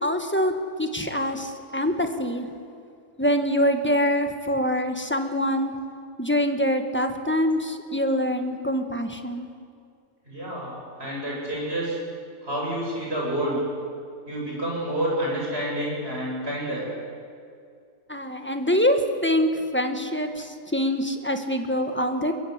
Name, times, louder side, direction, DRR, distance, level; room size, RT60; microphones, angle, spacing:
voice 1, 0.0-2.5 3.2-5.7 6.2-9.5 18.1-22.3, equal, 10° left, 5 dB, 1.6 m, -25 dB
voice 2, 10.3-12.0 12.4-13.6 14.3-16.9, right 1 dB, 40° right, -4 dB, 8.4 m, -29 dB
22.5 x 22.0 x 8.2 m, 2.3 s
omnidirectional pair, 1.5 m